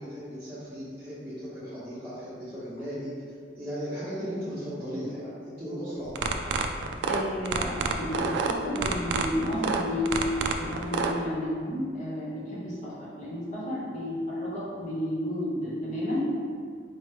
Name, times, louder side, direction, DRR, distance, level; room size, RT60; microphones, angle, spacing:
voice 1, 0.0-3.1 3.5-6.2, equal, 10° right, -14 dB, 0.8 m, -36 dB
sound 1, 6.1-11.1, right 5 dB, 75° right, 0.3 m, -28 dB
voice 2, 7.1-10.1 10.5-16.3, left 1 dB, 45° left, -7 dB, 0.9 m, -32 dB
4.4 x 3.0 x 3.2 m, 2.1 s
head